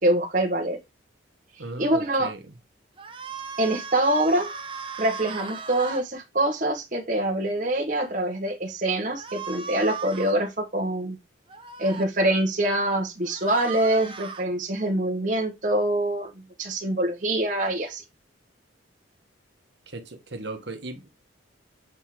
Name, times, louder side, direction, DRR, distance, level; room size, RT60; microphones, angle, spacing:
voice 1, 0.0-0.8 1.8-2.3 3.6-4.5 5.0-11.2 11.8-16.3 16.6-18.0, right 1 dB, 40° right, 1.2 m, -25 dB
voice 2, 1.6-2.6 19.9-21.1, right 2 dB, 60° right, 1.4 m, -37 dB
sound 1, 3.0-6.0 9.1-10.4 11.5-12.1 13.2-14.4, right 5 dB, 25° right, 0.9 m, -37 dB
8.2 x 3.6 x 4.7 m
head